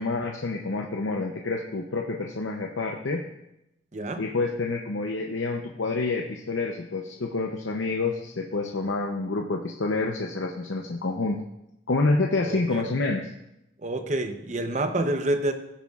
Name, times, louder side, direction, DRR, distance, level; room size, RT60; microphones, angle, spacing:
voice 1, 0.0-3.3 4.2-11.4 11.9-13.3, left 3 dB, 80° left, 2 dB, 0.7 m, -28 dB
voice 2, 12.4-12.9 13.8-15.5, right 1 dB, 40° right, 7 dB, 0.8 m, -28 dB
16.0 x 9.3 x 2.4 m, 0.87 s
head